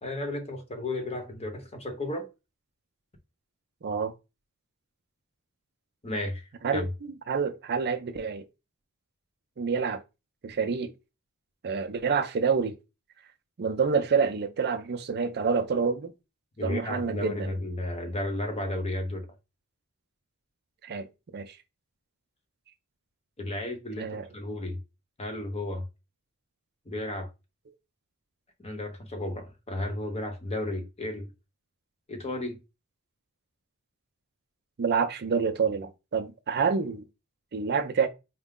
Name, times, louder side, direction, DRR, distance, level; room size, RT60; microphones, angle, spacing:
voice 1, 0.0-2.3 6.0-6.9 16.6-19.3 23.4-24.8 25.2-25.9 26.9-27.3 28.6-31.3 32.1-32.6, left 1 dB, 30° left, 0.8 m, -33 dB
voice 2, 3.8-4.1 6.6-8.4 9.6-10.0 10.4-10.9 11.6-12.7 13.6-16.1 16.6-17.6 20.8-21.1 21.3-21.6 24.0-24.3 34.8-37.0 37.5-38.1, right 5 dB, 45° right, 0.5 m, -27 dB
4.6 x 2.0 x 3.6 m
head